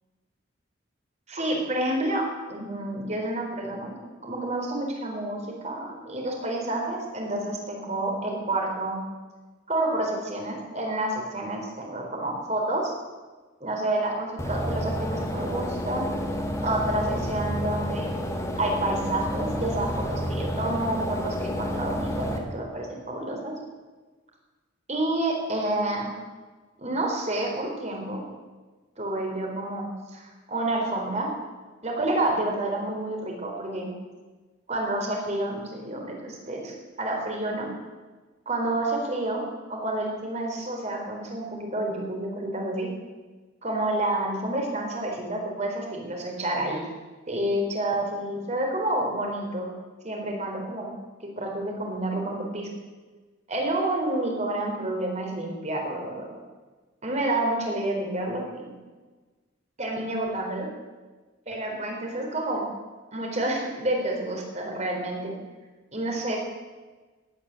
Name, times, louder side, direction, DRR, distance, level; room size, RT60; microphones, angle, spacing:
voice 1, 1.3-3.9 4.2-9.0 9.7-12.9 13.6-16.0 16.6-18.1 18.6-23.5 24.9-26.1 26.8-28.2 29.0-31.3 31.8-33.9 34.7-37.7 38.5-39.4 39.7-42.9 43.6-46.8 47.3-49.7 50.0-50.9 51.2-52.7 53.5-56.3 57.0-58.8 59.8-60.7 61.5-62.7 63.1-65.3 65.9-66.4, right 1 dB, 35° right, 0 dB, 4.0 m, -29 dB
sound 1, 14.4-22.4, equal, 15° left, 2.0 m, -30 dB
18.0 x 9.3 x 8.5 m, 1.3 s
head